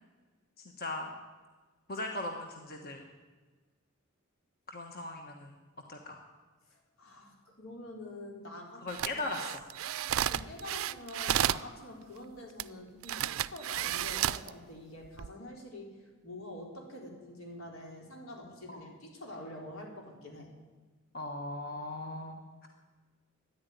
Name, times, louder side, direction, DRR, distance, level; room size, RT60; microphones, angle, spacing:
voice 1, 0.6-1.1 1.9-3.0 4.7-5.5 5.9-6.2 8.8-9.6 18.7-18.8 21.1-22.7, left 2 dB, 50° left, 3 dB, 1.3 m, -39 dB
voice 2, 6.7-8.9 9.1-9.2 10.0-16.0 16.2-20.5, left 1 dB, 85° left, 0 dB, 3.8 m, -46 dB
sound 1, 8.9-11.7 12.6-12.7 13.0-14.5 15.0-15.3, right 11 dB, 90° right, 0.4 m, -32 dB
13.0 x 10.5 x 9.5 m, 1.3 s
head